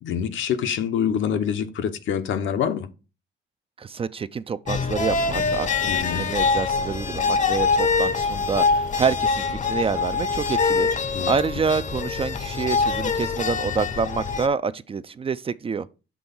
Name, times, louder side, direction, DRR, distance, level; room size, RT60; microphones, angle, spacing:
voice 1, 0.0-2.9 5.9-6.3 11.1-11.3, left 8 dB, 75° left, 0.8 m, -26 dB
voice 2, 3.8-15.9, right 5 dB, 30° right, 0.4 m, -27 dB
sound 1, 4.7-14.5, left 4 dB, 40° left, 0.7 m, -24 dB
6.2 x 3.4 x 5.4 m
cardioid pair, 90°, 20 cm